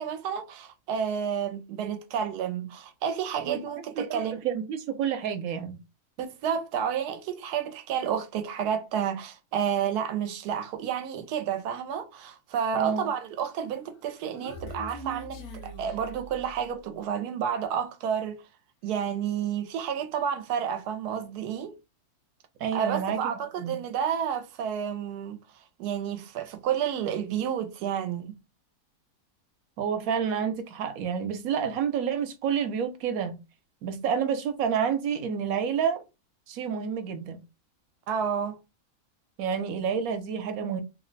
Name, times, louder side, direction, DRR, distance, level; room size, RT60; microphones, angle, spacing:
voice 1, 0.0-4.4 6.2-18.4 18.8-21.7 22.7-25.4 25.8-28.4 38.1-38.6, right 8 dB, 90° right, 1.1 m, -30 dB
voice 2, 3.9-5.8 12.7-13.1 22.6-23.2 23.6-23.8 29.8-33.4 33.8-36.0 36.5-37.4 39.4-40.8, right 7 dB, 70° right, 1.1 m, -29 dB
Human voice, 13.8-16.8, right 1 dB, 75° left, 1.2 m, -42 dB
3.2 x 2.1 x 3.8 m
omnidirectional pair, 1.6 m